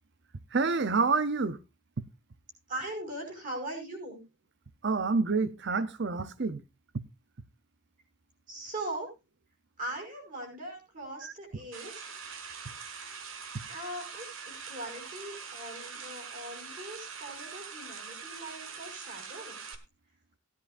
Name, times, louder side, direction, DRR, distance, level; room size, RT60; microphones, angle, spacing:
voice 1, 0.5-1.6 4.8-6.6 11.2-11.3, right 4 dB, 55° right, 0.7 m, -28 dB
voice 2, 2.7-4.2 8.5-9.1 9.8-12.0 13.7-14.3 14.7-19.6, right 1 dB, 35° right, 5.4 m, -40 dB
sound 1, 11.7-19.8, right 6 dB, 70° right, 1.5 m, -43 dB
17.5 x 10.5 x 2.5 m
head